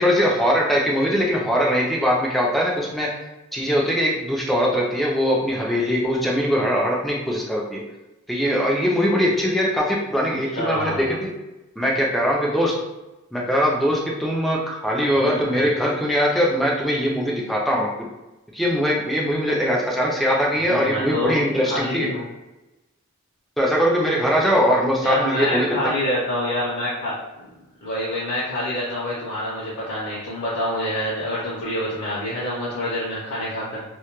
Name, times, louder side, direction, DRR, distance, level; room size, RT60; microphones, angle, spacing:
voice 1, 0.0-3.1 3.5-7.8 8.3-11.3 11.8-12.7 13.3-17.9 18.5-22.1 23.6-25.9, equal, ahead, -3 dB, 0.4 m, -21 dB
voice 2, 10.6-11.1 15.2-15.6 20.6-21.3 21.7-22.3 25.0-27.1 27.8-33.8, left 1 dB, 45° left, -8 dB, 0.6 m, -26 dB
2.1 x 2.1 x 2.9 m, 1.0 s
head